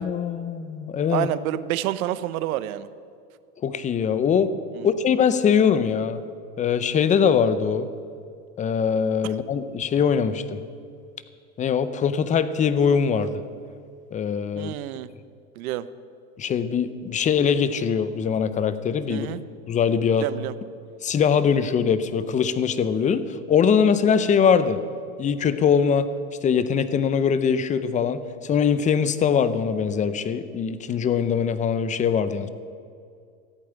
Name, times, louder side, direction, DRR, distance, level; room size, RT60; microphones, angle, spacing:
voice 1, 0.0-1.3 3.6-4.5 4.8-6.2 6.6-7.9 8.6-10.6 11.6-13.4 14.1-14.7 16.4-19.3 19.7-20.3 21.0-24.8 25.2-26.1 26.4-32.5, left 7 dB, 15° left, 13 dB, 0.6 m, -22 dB
voice 2, 1.1-2.9 4.8-4.9 14.6-15.1 15.6-15.8 19.1-19.4 20.2-20.5, right 13 dB, 70° right, 15 dB, 0.8 m, -28 dB
14.0 x 8.7 x 9.0 m, 2.3 s
supercardioid pair, 125°, 44 cm